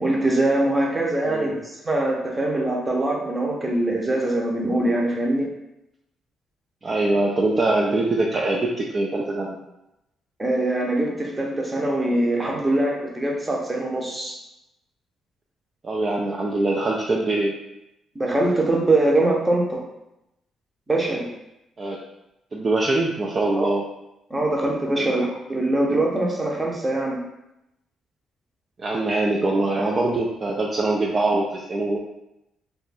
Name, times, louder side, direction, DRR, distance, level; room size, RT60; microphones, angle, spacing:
voice 1, 0.0-5.5 10.4-14.4 18.1-19.8 20.9-21.3 23.6-23.7 24.3-27.2, right 1 dB, 20° right, 0 dB, 0.7 m, -23 dB
voice 2, 1.3-1.6 6.8-9.6 15.8-17.5 21.8-22.0 22.5-23.8 25.0-25.2 28.8-32.0, right 2 dB, 40° right, -1 dB, 0.4 m, -23 dB
2.5 x 2.3 x 4.0 m, 0.89 s
cardioid pair, 90°, 0 cm